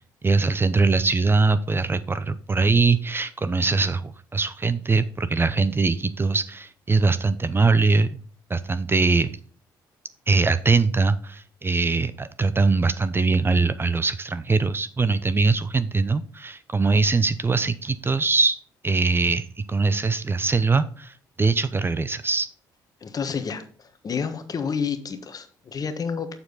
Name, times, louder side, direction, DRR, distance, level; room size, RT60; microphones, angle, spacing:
voice 1, 0.2-8.2 8.5-9.3 10.3-18.6 18.8-22.5, right 4 dB, 25° right, 14 dB, 0.6 m, -22 dB
voice 2, 23.0-26.3, left 6 dB, 45° left, 9 dB, 1.3 m, -30 dB
7.0 x 6.6 x 3.9 m, 0.43 s
supercardioid pair, 65°, 9 cm